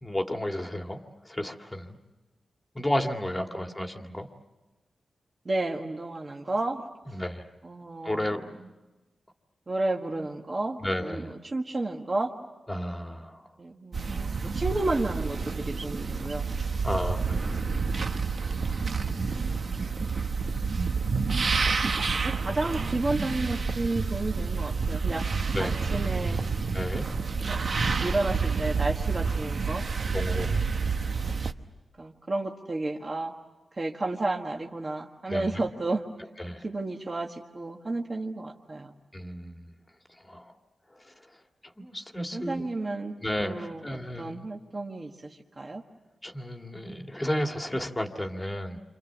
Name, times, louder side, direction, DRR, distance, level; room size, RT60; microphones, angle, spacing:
voice 1, 0.0-1.0 1.2-2.0 2.7-4.3 7.1-7.5 8.0-8.4 10.2-10.3 10.8-11.3 12.7-13.5 16.8-17.6 25.5-25.8 26.7-27.1 30.1-30.7 35.3-35.7 36.4-36.7 39.1-39.6 40.2-40.5 41.0-41.1 41.6-42.7 43.2-44.5 46.2-48.8, left 1 dB, 10° left, 3 dB, 1.9 m, -32 dB
voice 2, 5.4-6.8 7.6-8.7 9.7-12.3 13.6-16.4 22.2-25.2 25.6-26.5 27.5-27.7 28.0-29.8 32.0-33.3 33.8-36.0 36.6-38.9 42.3-43.2 43.4-45.8, right 2 dB, 25° right, 1 dB, 1.6 m, -32 dB
sound 1, 13.9-31.5, right 4 dB, 45° right, 1.1 m, -29 dB
30.0 x 27.0 x 7.4 m, 1.1 s
wide cardioid pair, 175°, 0 cm